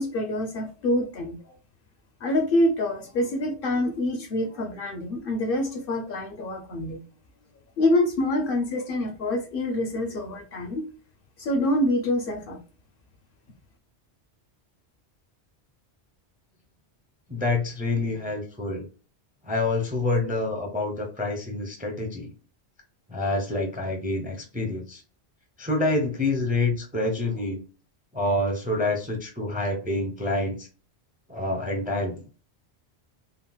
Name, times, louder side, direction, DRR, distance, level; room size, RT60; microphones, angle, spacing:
voice 1, 0.0-1.4 2.2-7.0 7.8-10.9 11.4-12.6, left 1 dB, 60° left, 0.7 m, -26 dB
voice 2, 17.3-18.9 19.4-22.3 23.1-25.0 25.6-27.6 28.1-30.7 31.3-32.2, left 2 dB, 10° right, 0.4 m, -27 dB
3.6 x 2.0 x 2.3 m
omnidirectional pair, 1.1 m